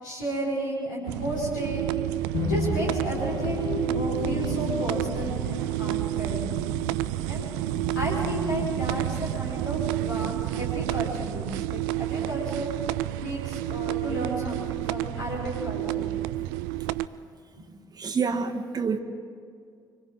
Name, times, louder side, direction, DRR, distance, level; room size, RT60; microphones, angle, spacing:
voice 1, 0.0-1.9 2.4-6.4 7.3-7.5 8.0-12.7 13.2-16.1 17.6-17.7, right 1 dB, 85° left, -5 dB, 5.2 m, -32 dB
sound 1, 1.1-17.1, right 16 dB, 70° right, 0.4 m, -30 dB
sound 2, 2.3-11.1, left 5 dB, 50° left, 1.6 m, -35 dB
voice 2, 18.0-19.0, right 5 dB, 40° right, 3 dB, 1.6 m, -27 dB
29.5 x 24.5 x 3.7 m, 2.2 s
figure-of-eight pair, 45°, 10 cm